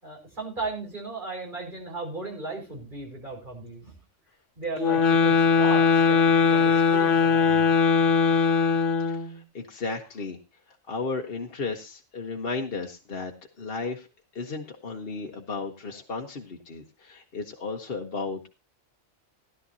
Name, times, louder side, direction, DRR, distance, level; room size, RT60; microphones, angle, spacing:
voice 1, 0.0-3.9 4.6-7.6, right 3 dB, 40° right, -1 dB, 5.4 m, -36 dB
sound 1, 4.8-9.3, left 5 dB, 80° left, 1.5 m, -20 dB
voice 2, 9.1-10.4 10.7-14.1 14.3-18.5, left 4 dB, 55° left, 2 dB, 1.4 m, -34 dB
17.0 x 11.5 x 2.7 m, 0.27 s
omnidirectional pair, 1.2 m